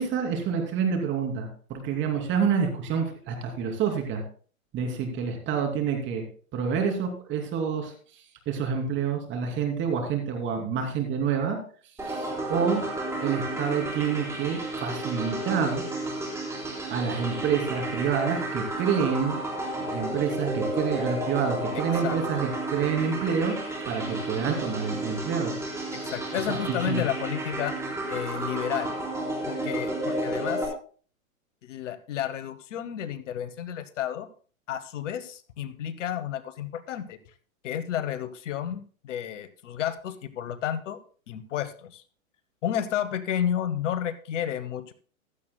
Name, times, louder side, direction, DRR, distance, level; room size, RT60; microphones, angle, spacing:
voice 1, 0.0-4.2 4.7-6.2 6.5-7.9 8.5-11.6 12.0-12.8 13.2-15.8 16.9-19.3 19.8-23.6 23.9-25.6 26.6-27.0, right 6 dB, 25° right, 3 dB, 2.8 m, -28 dB
sound 1, 12.0-30.6, right 1 dB, 5° right, 3.9 m, -32 dB
voice 2, 21.7-22.4 25.9-27.8 28.1-28.9 29.5-30.7 31.6-34.3 34.7-37.2 37.6-41.0 41.3-42.0 42.6-44.9, left 10 dB, 60° left, 13 dB, 1.1 m, -31 dB
15.5 x 12.5 x 2.2 m, 0.41 s
hypercardioid pair, 125°, 42 cm